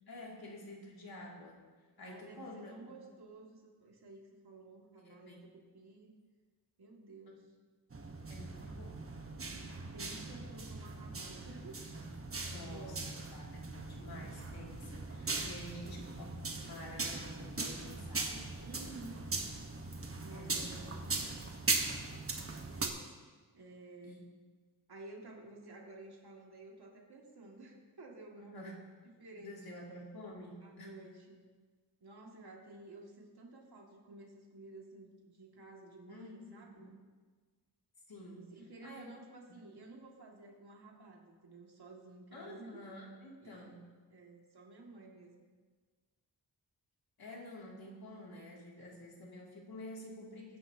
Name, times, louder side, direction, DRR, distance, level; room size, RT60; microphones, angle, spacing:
voice 1, 0.1-1.6 2.0-2.7 5.0-5.4 7.3-7.4 8.3-9.0 12.5-18.5 20.3-21.0 24.0-24.2 28.4-28.8 29.4-30.9 36.1-36.9 38.1-38.5 38.8-39.1 42.3-43.9 47.2-50.6, left 1 dB, 70° left, -3 dB, 2.7 m, -49 dB
voice 2, 2.0-6.1 6.8-7.6 8.6-8.8 9.4-11.8 12.3-13.2 15.3-16.0 18.6-19.3 20.2-21.4 22.3-23.1 23.5-24.3 24.9-28.8 29.2-29.6 30.6-31.4 32.0-36.9 38.3-42.9 43.4-43.8 44.1-45.5, right 2 dB, 75° right, -1 dB, 2.3 m, -53 dB
sound 1, 7.9-22.9, right 3 dB, 35° right, 1.2 m, -40 dB
21.0 x 10.5 x 2.9 m, 1.4 s
wide cardioid pair, 135°, 39 cm